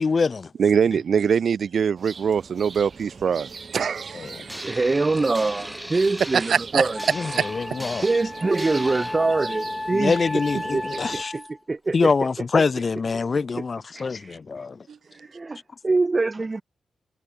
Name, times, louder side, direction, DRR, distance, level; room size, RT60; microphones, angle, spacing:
voice 1, 0.0-0.5 4.1-4.4 7.1-8.1 9.9-11.3 11.9-14.8, left 4 dB, 40° left, 0.8 m, -24 dB
voice 2, 0.6-4.7 6.3-6.9 7.4-7.5 10.5-10.6 14.9-15.0, right 7 dB, 65° right, 1.7 m, -23 dB
sound 1, 2.0-11.2, right 5 dB, 45° right, 2.7 m, -40 dB
sound 2, 4.5-9.2, equal, 5° right, 7.5 m, -38 dB
voice 3, 4.6-7.0 8.0-10.2 10.7-10.8 11.1-11.2 11.7-12.1 13.9-14.4 15.2-16.6, right 3 dB, 30° right, 0.4 m, -24 dB
Wind instrument woodwind instrument, 6.9-11.6, left 2 dB, 15° left, 1.5 m, -33 dB
cardioid pair, 90°, 0 cm